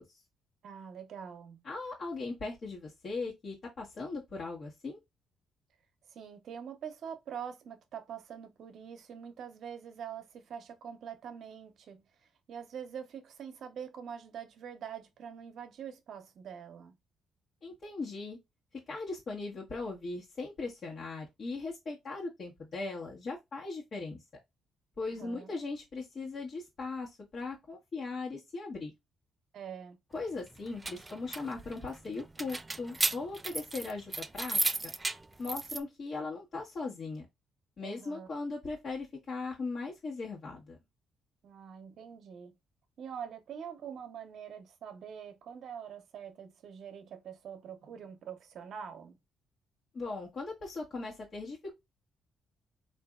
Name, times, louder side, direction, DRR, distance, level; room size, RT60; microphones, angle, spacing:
voice 1, 0.6-1.6 6.1-17.0 25.0-25.5 29.5-30.0 37.8-38.3 41.4-42.5 43.0-49.2, right 8 dB, 65° right, 0.7 m, -44 dB
voice 2, 1.6-5.0 17.6-18.4 18.9-24.2 25.0-28.9 30.1-34.7 35.4-37.3 37.8-40.8 49.9-51.7, left 3 dB, 50° left, 1.2 m, -39 dB
sound 1, 30.5-35.8, right 2 dB, 20° right, 0.3 m, -35 dB
3.9 x 2.6 x 2.3 m
cardioid pair, 90°, 0 cm